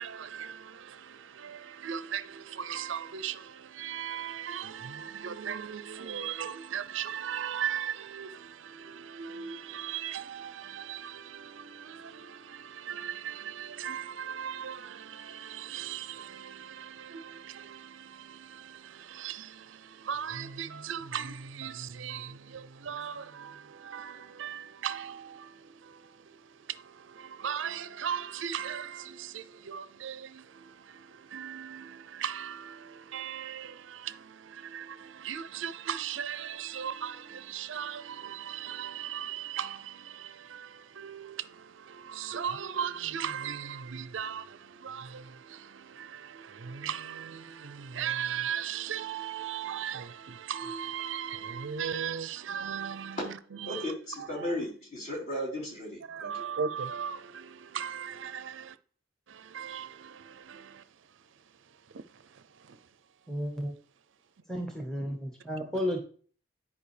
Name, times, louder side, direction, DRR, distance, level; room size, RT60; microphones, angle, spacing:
voice 1, 0.0-26.4 26.7-53.2 53.7-53.9 54.2-54.5 56.1-58.8 59.3-60.8 62.7-62.8, right 8 dB, 80° right, 0.5 m, -38 dB
voice 2, 53.6-56.5, left 1 dB, 40° left, 4.1 m, -35 dB
voice 3, 63.3-63.7 64.5-66.0, equal, 5° left, 1.1 m, -33 dB
10.5 x 5.0 x 3.3 m
head